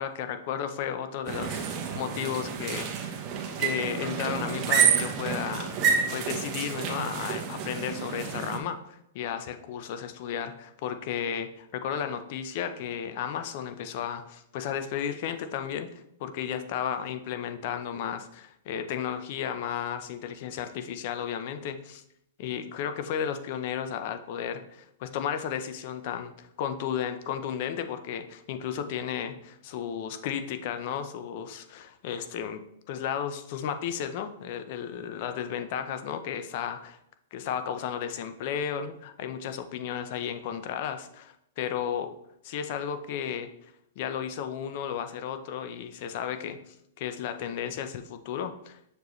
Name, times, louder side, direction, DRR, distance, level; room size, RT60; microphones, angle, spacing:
voice 1, 0.0-3.2 3.6-5.8 6.1-15.9 16.2-22.0 22.4-32.6 32.9-37.0 37.3-42.1 42.4-48.8, left 8 dB, 55° left, 9 dB, 0.6 m, -34 dB
sound 1, 1.3-8.6, right 7 dB, 35° right, 1.0 m, -29 dB
6.5 x 4.9 x 3.1 m, 0.76 s
hypercardioid pair, 125°, 0 cm